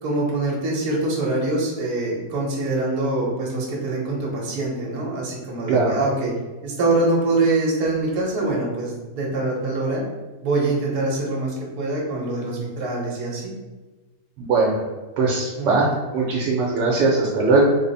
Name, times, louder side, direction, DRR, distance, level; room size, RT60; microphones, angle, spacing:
voice 1, 0.0-6.3 6.6-10.0 10.4-13.5 15.6-15.9, right 2 dB, 65° right, -3 dB, 1.4 m, -24 dB
voice 2, 14.4-14.8 15.2-17.6, right 3 dB, 80° right, -3 dB, 1.3 m, -20 dB
3.7 x 2.0 x 4.0 m, 1.2 s
omnidirectional pair, 1.9 m